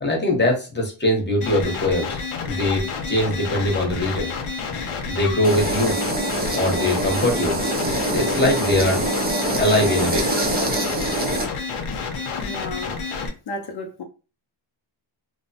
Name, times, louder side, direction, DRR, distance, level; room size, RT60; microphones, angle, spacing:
voice 1, 0.0-2.2 2.4-4.3 5.1-5.9 6.5-7.6 8.1-9.0 9.6-10.3, left 1 dB, 20° left, 0.9 m, -22 dB
sound 1, 1.4-13.3, left 4 dB, 85° left, 0.7 m, -30 dB
sound 2, 5.4-11.5, right 1 dB, 20° right, 0.4 m, -24 dB
voice 2, 12.4-13.0 13.5-14.0, left 2 dB, 55° left, 0.5 m, -32 dB
2.9 x 2.0 x 2.7 m
wide cardioid pair, 110°, 49 cm